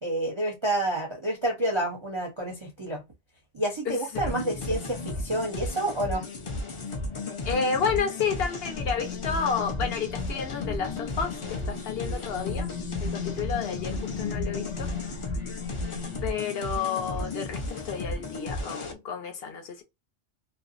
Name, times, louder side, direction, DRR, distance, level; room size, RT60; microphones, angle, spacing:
voice 1, 0.0-3.0 3.5-6.2, right 1 dB, 35° right, 0.5 m, -29 dB
sound 1, 4.1-18.9, left 2 dB, 45° left, 0.4 m, -34 dB
voice 2, 7.4-12.7 13.0-14.9 16.2-19.8, left 6 dB, 60° left, 0.9 m, -31 dB
sound 2, 8.6-16.2, left 6 dB, 90° left, 1.0 m, -38 dB
2.6 x 2.0 x 2.4 m
omnidirectional pair, 1.2 m